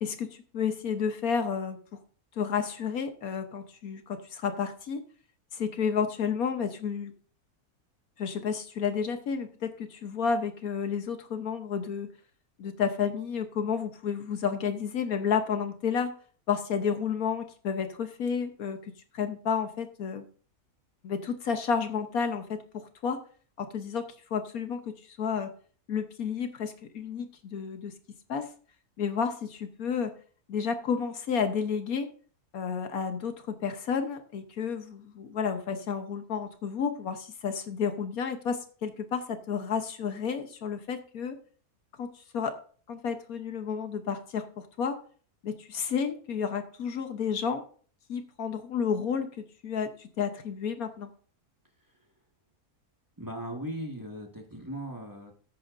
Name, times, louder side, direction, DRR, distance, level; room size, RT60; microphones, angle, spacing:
voice 1, 0.0-1.8 2.4-5.0 5.5-7.1 8.2-12.1 12.6-16.1 16.5-18.8 19.1-20.2 21.0-23.2 23.6-25.5 25.9-27.9 28.3-28.5 29.0-30.1 30.5-32.1 32.5-41.4 42.0-42.6 42.9-45.0 45.4-47.6 48.1-49.3 49.6-51.1, left 6 dB, 70° left, 7 dB, 1.4 m, -31 dB
voice 2, 53.2-55.3, right 1 dB, 15° right, 1 dB, 1.6 m, -38 dB
14.0 x 9.3 x 2.6 m, 0.43 s
omnidirectional pair, 1.6 m